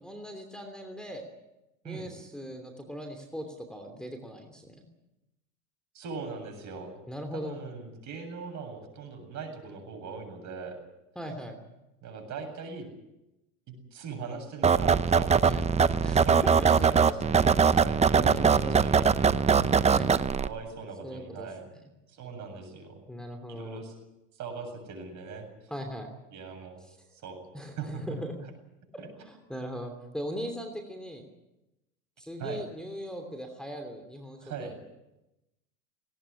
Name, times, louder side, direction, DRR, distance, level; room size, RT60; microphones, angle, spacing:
voice 1, 0.0-1.2 1.8-4.8 7.1-7.6 11.1-11.6 15.4-15.6 16.0-17.3 18.1-19.2 19.9-20.3 21.0-21.5 23.1-23.8 25.7-26.1 26.9-27.0 27.5-28.3 28.9-31.2 32.2-34.7, equal, ahead, 2 dB, 3.0 m, -39 dB
voice 2, 5.9-7.0 7.3-10.8 12.0-12.9 13.7-15.6 16.0-17.5 17.8-19.4 20.4-21.6 22.1-23.0 23.5-23.9 24.3-25.5 26.3-26.8 27.1-27.4 27.8-28.2 29.0-29.1 32.4-32.6 34.4-34.7, right 5 dB, 45° right, 5 dB, 7.8 m, -40 dB
sound 1, 14.6-20.5, right 6 dB, 15° right, 0.8 m, -22 dB
19.0 x 18.5 x 10.0 m, 0.96 s
hypercardioid pair, 100°, 41 cm